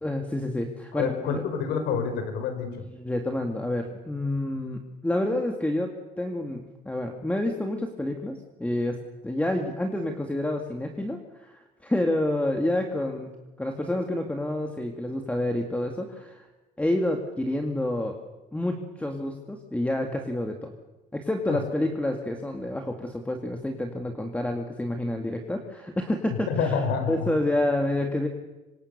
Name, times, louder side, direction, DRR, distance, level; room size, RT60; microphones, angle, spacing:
voice 1, 0.0-1.4 3.0-13.3 13.6-16.5 16.8-18.2 18.5-20.7 21.1-26.8 27.1-28.3, left 1 dB, 10° left, 4 dB, 2.3 m, -28 dB
voice 2, 0.9-2.7 21.5-21.6 26.5-27.3, left 6 dB, 85° left, 7 dB, 5.0 m, -27 dB
26.0 x 25.5 x 6.8 m, 1.1 s
cardioid pair, 110°, 17 cm